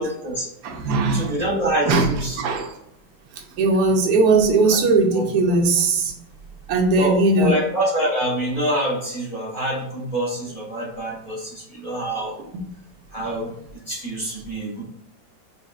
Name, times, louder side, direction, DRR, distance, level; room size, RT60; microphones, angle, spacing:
voice 1, 0.0-0.5 1.1-2.4 5.1-5.2 7.0-12.3 13.1-13.5 13.9-14.8, right 1 dB, 25° left, -4 dB, 1.1 m, -26 dB
voice 2, 0.6-1.4 1.9-2.7 3.6-6.1 6.7-7.6 12.5-12.7, right 3 dB, 75° right, 3 dB, 1.3 m, -19 dB
5.4 x 3.2 x 2.4 m, 0.78 s
omnidirectional pair, 1.9 m